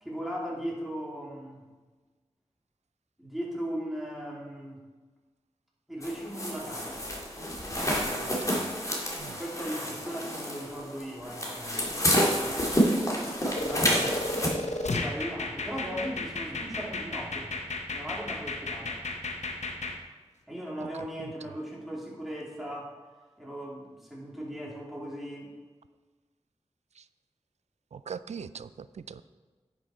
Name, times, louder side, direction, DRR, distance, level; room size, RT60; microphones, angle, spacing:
voice 1, 0.0-1.6 3.2-4.8 5.9-7.0 9.4-14.2 14.9-17.5 17.9-19.0 20.5-22.9 23.4-25.5, equal, ahead, -4 dB, 2.9 m, -38 dB
sound 1, 6.0-14.5, equal, 30° left, 2.3 m, -29 dB
voice 2, 8.0-8.7 9.2-9.4 20.8-20.9 21.2-21.3 27.0-27.1 27.9-29.2, right 6 dB, 80° right, 15 dB, 0.4 m, -42 dB
sound 2, 13.5-20.0, left 2 dB, 85° left, 0.8 m, -34 dB
10.0 x 6.3 x 4.3 m, 1.3 s
cardioid pair, 45°, 11 cm